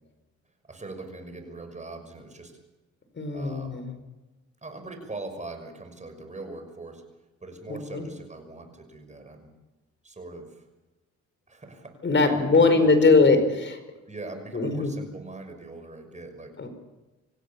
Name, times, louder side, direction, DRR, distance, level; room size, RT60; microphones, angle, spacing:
voice 1, 0.7-2.5 3.3-3.8 4.6-7.0 7.4-9.5 10.0-10.7 11.5-11.9 12.3-13.4 14.1-16.6, right 2 dB, 25° right, 5 dB, 6.0 m, -41 dB
voice 2, 3.1-3.9 7.7-8.0 12.0-13.7 14.5-14.9 16.6-16.7, left 3 dB, 40° left, 8 dB, 5.0 m, -21 dB
26.0 x 16.5 x 7.2 m, 1.1 s
cardioid pair, 90°, 30 cm